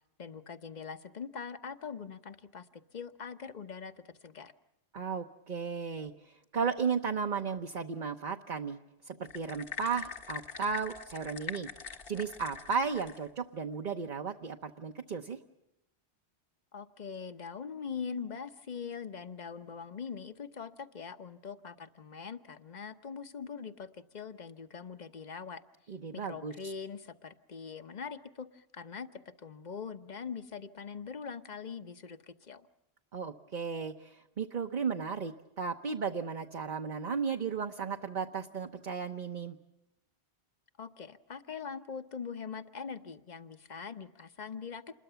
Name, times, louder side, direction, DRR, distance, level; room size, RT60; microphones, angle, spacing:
voice 1, 0.2-4.5 16.7-25.6 26.1-32.7 40.8-45.0, left 6 dB, 45° left, 10 dB, 1.1 m, -42 dB
voice 2, 4.9-8.8 9.0-11.7 12.1-15.4 25.9-26.7 33.1-39.6, right 5 dB, 50° right, 4 dB, 1.1 m, -35 dB
sound 1, 9.2-13.3, left 6 dB, 60° left, 1.7 m, -43 dB
28.0 x 21.5 x 7.0 m, 0.90 s
omnidirectional pair, 1.1 m